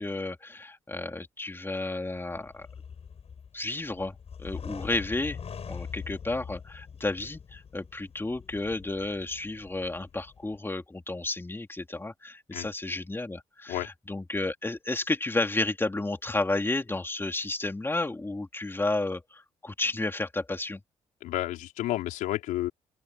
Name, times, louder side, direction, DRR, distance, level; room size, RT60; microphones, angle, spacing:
voice 1, 0.0-2.7 3.5-4.1 4.4-5.4 5.7-20.8, left 2 dB, 15° left, 3.2 m, -32 dB
sound 1, 2.1-10.6, left 6 dB, 50° left, 6.2 m, -43 dB
voice 2, 21.2-22.7, left 15 dB, 85° left, 5.5 m, -31 dB
open air
supercardioid pair, 70°, 13 cm